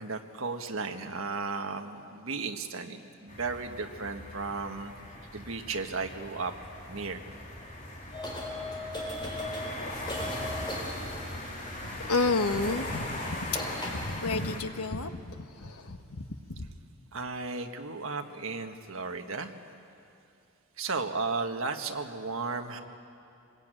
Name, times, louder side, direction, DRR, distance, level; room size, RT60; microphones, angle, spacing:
voice 1, 0.0-4.9 5.3-6.5 6.9-7.2 17.1-19.6 20.8-22.8, right 4 dB, 65° right, 6 dB, 1.5 m, -34 dB
sound 1, 3.3-14.6, left 1 dB, 35° left, 3.2 m, -40 dB
sound 2, 8.1-11.5 13.1-13.2 13.5-14.2, left 1 dB, 20° left, 4.1 m, -37 dB
voice 2, 11.8-16.7, left 3 dB, 85° left, 7 dB, 1.4 m, -31 dB
25.5 x 20.5 x 9.0 m, 2.5 s
head